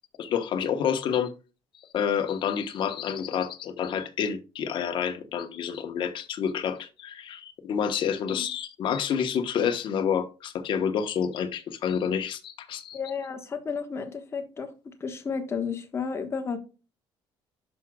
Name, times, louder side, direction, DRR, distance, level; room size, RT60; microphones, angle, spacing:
voice 1, 0.2-1.3 1.9-13.0, left 8 dB, 50° left, 1.2 m, -28 dB
voice 2, 12.9-14.7 15.0-16.6, left 5 dB, 25° left, 1.3 m, -32 dB
11.0 x 6.1 x 2.3 m
cardioid pair, 155°, 10 cm